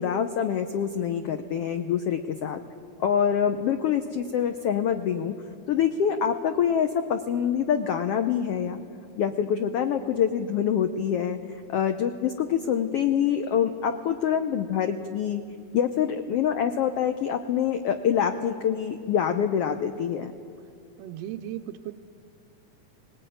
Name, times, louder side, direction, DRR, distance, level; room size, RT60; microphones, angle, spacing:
voice 1, 0.0-2.6 3.0-5.3 5.7-8.8 9.2-11.4 11.7-15.4 15.7-20.3, left 8 dB, 85° left, 7 dB, 1.3 m, -25 dB
voice 2, 21.0-21.9, right 12 dB, 85° right, 6 dB, 1.4 m, -36 dB
19.5 x 19.0 x 9.3 m, 2.4 s
omnidirectional pair, 3.7 m